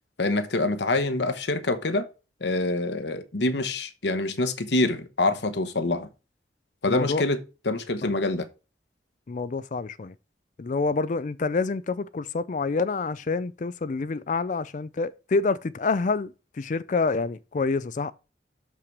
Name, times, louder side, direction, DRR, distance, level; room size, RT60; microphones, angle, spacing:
voice 1, 0.2-2.1 2.4-6.1 6.8-7.4 7.6-8.5, left 2 dB, 75° left, 1.1 m, -26 dB
voice 2, 6.9-7.2 8.0-8.1 9.3-10.1 10.6-18.1, left 4 dB, 45° left, 0.4 m, -27 dB
6.8 x 5.8 x 6.1 m
head